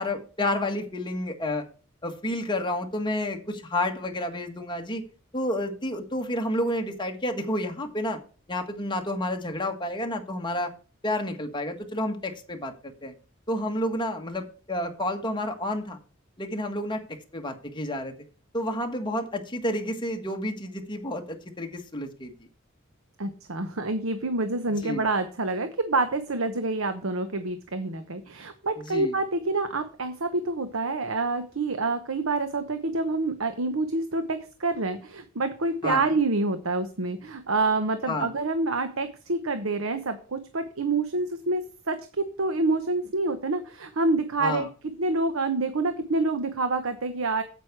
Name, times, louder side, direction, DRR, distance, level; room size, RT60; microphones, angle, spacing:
voice 1, 0.0-1.6 2.0-5.0 5.3-8.2 8.5-10.7 11.0-13.1 13.5-16.0 16.4-18.1 18.5-22.3 24.8-25.0 28.9-29.1 35.8-36.1 38.1-38.3 44.4-44.7, left 1 dB, 25° left, 4 dB, 1.6 m, -30 dB
voice 2, 23.2-44.7 45.0-47.4, right 3 dB, 80° right, 9 dB, 1.0 m, -27 dB
9.1 x 8.2 x 4.7 m, 0.37 s
head